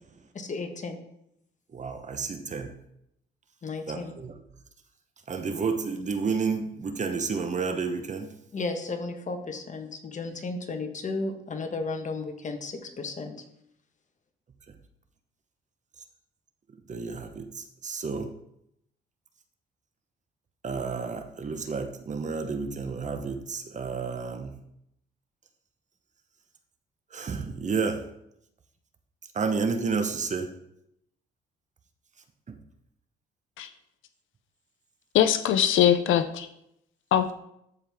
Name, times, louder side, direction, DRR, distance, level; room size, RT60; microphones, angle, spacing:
voice 1, 0.3-1.0 3.6-4.1 8.5-13.3, left 3 dB, 40° left, 5 dB, 1.3 m, -34 dB
voice 2, 1.7-2.7 3.9-4.3 5.3-8.3 16.9-18.3 20.6-24.6 27.1-28.0 29.3-30.5 32.5-32.6, right 5 dB, 35° right, 7 dB, 0.9 m, -31 dB
voice 3, 35.1-36.5 37.1-37.3, left 10 dB, 80° left, 11 dB, 0.6 m, -21 dB
13.0 x 4.6 x 3.5 m, 0.78 s
cardioid pair, 90°, 20 cm